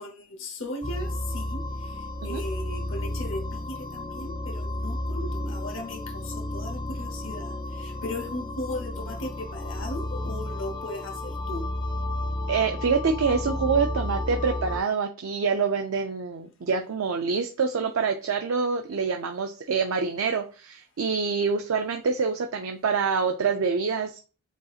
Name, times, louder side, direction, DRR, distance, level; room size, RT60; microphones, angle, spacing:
voice 1, 0.0-11.6 12.2-12.5, left 1 dB, 60° left, 0.9 m, -37 dB
sound 1, 0.8-14.8, left 1 dB, 20° left, 0.4 m, -32 dB
voice 2, 12.5-24.2, right 5 dB, 70° right, 0.4 m, -26 dB
8.1 x 2.8 x 2.4 m
head